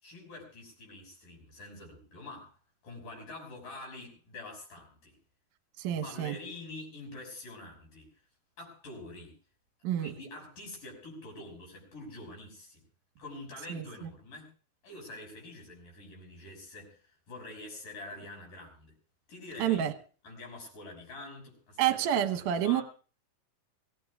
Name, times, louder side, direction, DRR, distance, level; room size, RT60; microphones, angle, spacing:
voice 1, 0.0-2.6 2.8-5.2 5.9-8.1 8.6-9.3 10.0-12.9 13.2-14.5 14.8-18.9 19.3-19.9 20.2-22.1 22.3-22.8, left 2 dB, 55° left, 7.4 m, -46 dB
voice 2, 5.8-6.3 9.8-10.1 13.7-13.8 19.6-19.9 21.8-22.8, right 11 dB, 65° right, 2.2 m, -28 dB
25.0 x 16.0 x 2.4 m
omnidirectional pair, 4.6 m